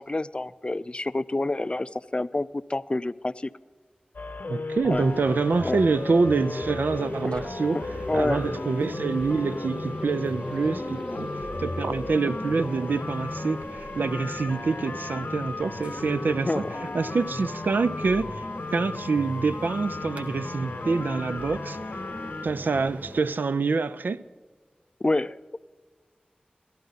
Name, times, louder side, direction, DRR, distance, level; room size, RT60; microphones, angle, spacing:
voice 1, 0.0-3.5 4.9-5.0 5.6-5.8 7.2-7.4 7.7-8.5 11.1-11.2 16.5-17.0 25.0-25.6, left 2 dB, 35° left, 0.4 m, -28 dB
sound 1, 4.1-22.5, left 3 dB, 65° left, 0.7 m, -35 dB
voice 2, 4.5-7.9 8.1-11.3 11.6-16.6 16.9-18.4 18.7-21.8 22.4-24.2, right 4 dB, 80° right, 0.4 m, -26 dB
sound 2, 4.9-23.2, right 1 dB, 45° right, 1.7 m, -41 dB
Space Ship, 6.3-15.6, equal, 25° right, 4.9 m, -40 dB
17.5 x 13.0 x 4.0 m
cardioid pair, 40°, 3 cm